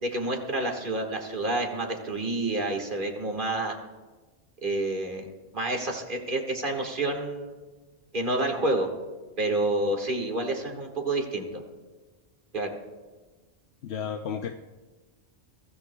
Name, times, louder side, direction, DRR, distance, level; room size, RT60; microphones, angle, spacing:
voice 1, 0.0-3.8 4.6-5.3 5.5-7.6 8.1-8.9 9.4-11.6 12.5-12.8, right 2 dB, 50° right, 2 dB, 1.8 m, -29 dB
voice 2, 13.8-14.6, left 7 dB, 70° left, 5 dB, 0.8 m, -32 dB
23.0 x 13.5 x 2.2 m, 1.3 s
omnidirectional pair, 1.1 m